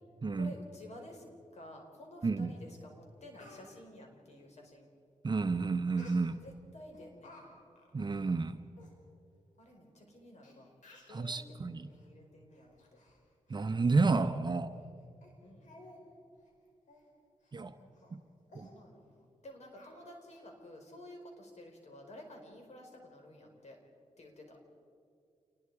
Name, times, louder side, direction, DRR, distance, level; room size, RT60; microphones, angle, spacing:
voice 1, 0.3-1.2 1.5-4.9 6.4-7.6 9.6-10.7 11.1-13.0 15.4-15.8 17.8-18.2 18.5-23.8 24.2-24.6, left 1 dB, 65° left, 2 dB, 4.8 m, -52 dB
Speech, 2.6-2.7 3.1-3.7 6.0-6.5 6.9-7.4 7.7-7.9 8.5-8.6 8.8-8.9 9.7-9.8 10.4-10.5 10.8-11.2 11.9-12.1 12.5-13.2 13.5-13.6 14.1-14.2 14.7-14.9 15.2-15.3 15.6-16.0 16.3-16.5 16.9-17.1 17.4-17.5 17.9-18.1 18.5-18.7 19.8-20.4 20.8-20.9, left 2 dB, 85° left, 5.1 m, -56 dB
voice 2, 5.2-6.4 7.9-8.6 11.1-11.8 13.5-14.7 17.5-17.7 18.1-18.2 18.5-18.7, right 3 dB, 35° right, 8 dB, 0.8 m, -30 dB
28.0 x 20.5 x 4.9 m, 2.4 s
cardioid pair, 80°, 12 cm